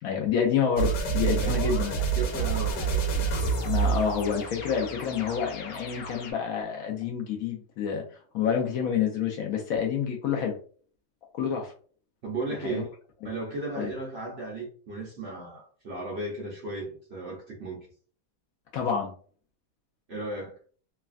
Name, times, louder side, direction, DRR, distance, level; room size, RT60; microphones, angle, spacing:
voice 1, 0.0-2.0 3.6-8.0 8.3-10.6 11.3-11.7 12.6-12.8 13.7-13.9 18.7-19.1, left 7 dB, 70° left, 0.9 m, -28 dB
sound 1, 0.8-6.3, right 5 dB, 90° left, 1.2 m, -28 dB
voice 2, 1.3-3.1 12.2-12.9 13.2-17.9 20.1-20.5, right 2 dB, 55° right, 0.7 m, -35 dB
3.1 x 2.3 x 2.4 m
omnidirectional pair, 1.8 m